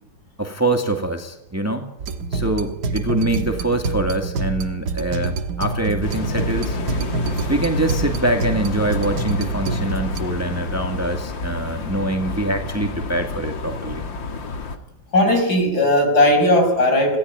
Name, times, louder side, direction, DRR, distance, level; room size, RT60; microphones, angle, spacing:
voice 1, 0.4-1.9 2.3-6.8 7.5-14.1, right 1 dB, 10° right, 5 dB, 2.2 m, -24 dB
sound 1, 2.0-10.2, right 4 dB, 65° right, 2.0 m, -26 dB
sound 2, 6.0-14.8, left 3 dB, 90° left, 2.8 m, -29 dB
voice 2, 15.1-17.2, left 1 dB, 55° left, 4 dB, 7.1 m, -17 dB
27.5 x 17.5 x 9.6 m, 0.83 s
omnidirectional pair, 2.0 m